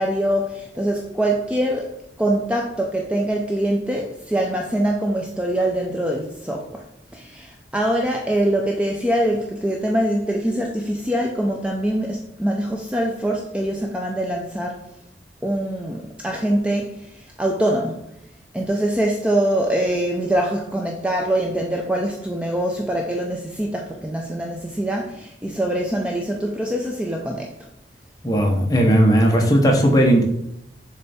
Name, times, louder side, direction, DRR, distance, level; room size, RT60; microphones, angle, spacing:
voice 1, 0.0-1.9 2.2-6.8 7.1-14.9 15.4-18.0 18.5-27.5, right 1 dB, 5° right, 1 dB, 0.4 m, -23 dB
voice 2, 28.2-30.2, equal, 20° left, 1 dB, 0.9 m, -16 dB
6.8 x 3.3 x 4.2 m, 0.78 s
head